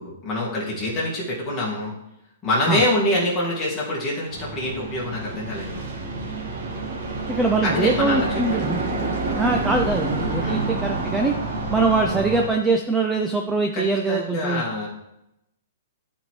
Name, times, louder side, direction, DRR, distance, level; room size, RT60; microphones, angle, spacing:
voice 1, 0.0-1.9 2.4-5.9 7.6-8.6 10.4-10.6 13.7-14.9, left 1 dB, 15° left, -6 dB, 1.8 m, -25 dB
sound 1, 4.3-12.5, right 3 dB, 50° right, 1.7 m, -28 dB
voice 2, 7.3-8.8 9.3-11.3 11.7-14.6, right 3 dB, 5° right, 2 dB, 0.4 m, -23 dB
11.5 x 4.4 x 3.2 m, 0.85 s
hypercardioid pair, 175°, 0 cm